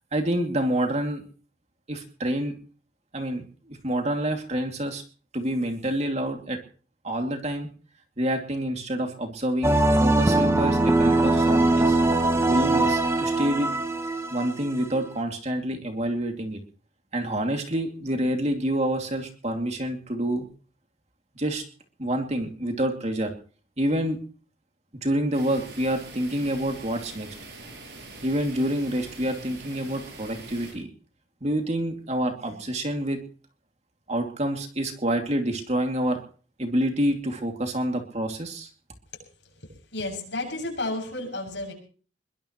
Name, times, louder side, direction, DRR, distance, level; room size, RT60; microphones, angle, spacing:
voice 1, 0.1-1.2 1.9-2.5 3.1-5.0 5.3-6.6 7.0-7.7 8.2-12.0 12.5-13.7 14.3-16.6 17.1-20.5 21.4-21.6 22.0-23.3 23.8-24.2 25.0-27.3 28.2-30.9 31.4-33.2 34.1-36.2 36.6-38.7, right 1 dB, 40° right, 4 dB, 2.5 m, -27 dB
sound 1, 9.6-15.0, right 2 dB, 15° right, 1.2 m, -21 dB
sound 2, 25.3-30.7, right 2 dB, 65° right, 7.7 m, -43 dB
voice 2, 39.9-41.7, left 2 dB, 80° left, 2 dB, 7.4 m, -31 dB
22.0 x 20.0 x 3.1 m, 0.42 s
head